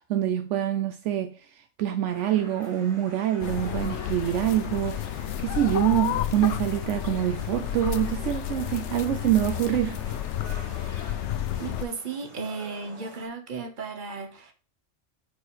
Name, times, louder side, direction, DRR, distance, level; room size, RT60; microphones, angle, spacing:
voice 1, 0.1-1.4 1.8-10.0, right 12 dB, 75° right, 0.9 m, -25 dB
sound 1, 2.1-13.3, right 1 dB, 25° right, 1.7 m, -47 dB
sound 2, 3.4-11.9, left 11 dB, 75° left, 0.9 m, -31 dB
voice 2, 11.6-14.5, right 4 dB, 45° right, 1.2 m, -35 dB
4.9 x 4.8 x 5.5 m
omnidirectional pair, 1.3 m